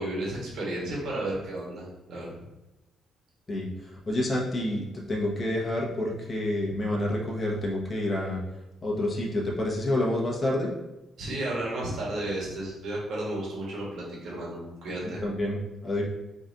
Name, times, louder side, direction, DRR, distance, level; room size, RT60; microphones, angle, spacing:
voice 1, 0.0-2.4 11.2-15.2, right 1 dB, 70° right, -5 dB, 1.5 m, -33 dB
voice 2, 4.1-8.4 8.8-10.7 15.0-16.0, left 1 dB, 30° left, -3 dB, 1.0 m, -28 dB
3.9 x 2.5 x 3.9 m, 1.0 s
cardioid pair, 90°, 0 cm